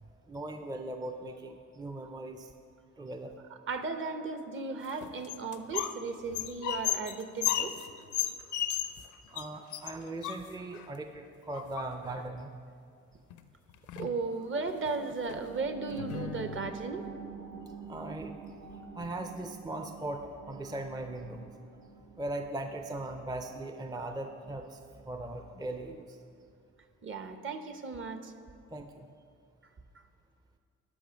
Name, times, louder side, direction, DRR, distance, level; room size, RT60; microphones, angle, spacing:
voice 1, 0.0-2.5 3.0-3.3 8.7-8.8 9.3-12.5 17.9-18.4 18.9-21.5 22.2-26.2 28.7-29.1, right 2 dB, 15° right, 6 dB, 0.5 m, -39 dB
voice 2, 3.7-7.7 14.0-17.1 27.0-28.3, right 4 dB, 40° right, 8 dB, 0.8 m, -36 dB
sound 1, 4.8-6.0 6.3-9.1 9.4-9.5 9.7-10.9 11.5-12.2 13.3-13.4 13.7-14.2 14.7-14.9 15.3-15.4 15.9-16.7, left 11 dB, 75° left, 0.6 m, -34 dB
sound 2, 14.4-25.5 25.9-26.0, right 5 dB, 85° right, 1.4 m, -48 dB
12.5 x 5.6 x 5.1 m, 2.3 s
cardioid pair, 90°, 30 cm